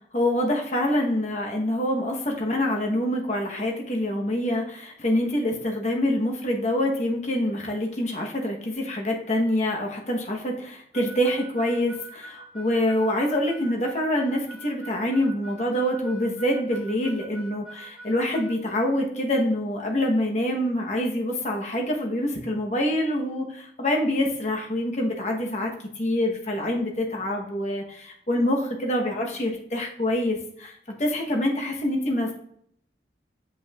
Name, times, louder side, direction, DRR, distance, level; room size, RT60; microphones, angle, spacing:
voice 1, 0.1-25.7 26.0-32.3, left 1 dB, 40° left, 1 dB, 0.9 m, -26 dB
Harmonica, 10.9-18.5, right 2 dB, 5° right, 1.6 m, -44 dB
7.8 x 5.3 x 2.3 m, 0.68 s
head